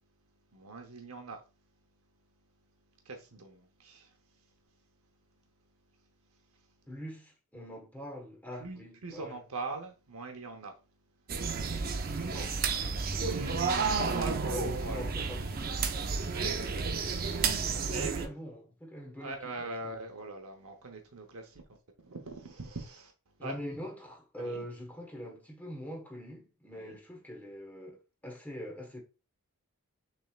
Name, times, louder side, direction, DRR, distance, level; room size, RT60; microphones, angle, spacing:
voice 1, 0.5-1.4 3.0-4.5 6.5-6.7 8.6-10.8 12.0-12.5 13.1-15.8 16.3-16.8 17.9-18.3 19.2-21.6 22.0-23.1 23.4-23.6 24.4-24.7 26.7-27.0, right 3 dB, 70° right, 0.8 m, -42 dB
voice 2, 6.9-9.4 12.0-12.6 14.0-15.8 17.9-20.0 23.4-29.0, equal, 5° left, 1.3 m, -43 dB
sound 1, 11.3-18.3, right 5 dB, 40° right, 0.6 m, -31 dB
6.3 x 3.4 x 2.4 m
head